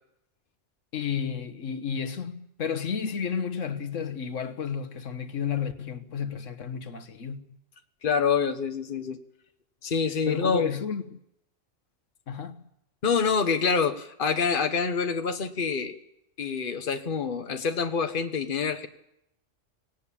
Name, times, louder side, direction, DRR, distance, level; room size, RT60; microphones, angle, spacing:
voice 1, 0.9-7.4 10.2-11.2 12.3-12.6, left 7 dB, 85° left, 1.5 m, -32 dB
voice 2, 8.0-9.2 9.8-10.7 13.0-16.0 16.4-18.9, left 5 dB, 45° left, 1.4 m, -26 dB
18.0 x 18.0 x 8.5 m
omnidirectional pair, 1.3 m